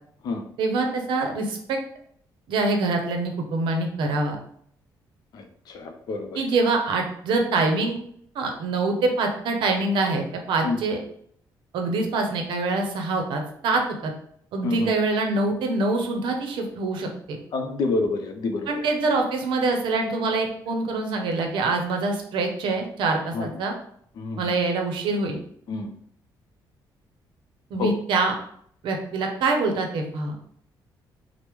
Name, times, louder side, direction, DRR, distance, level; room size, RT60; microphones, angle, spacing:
voice 1, 0.6-1.8 2.5-4.4 6.3-8.0 8.3-11.0 11.7-14.1 14.5-17.4 18.7-23.7 24.4-25.4 27.7-28.3 28.8-30.3, right 3 dB, 80° right, 3 dB, 0.6 m, -25 dB
voice 2, 5.3-6.4 10.6-10.8 14.6-14.9 17.5-18.8 23.3-23.5 24.2-24.5 25.7-25.9 27.8-27.9, left 3 dB, 55° left, 5 dB, 0.5 m, -28 dB
3.0 x 2.0 x 3.4 m, 0.65 s
cardioid pair, 160°, 8 cm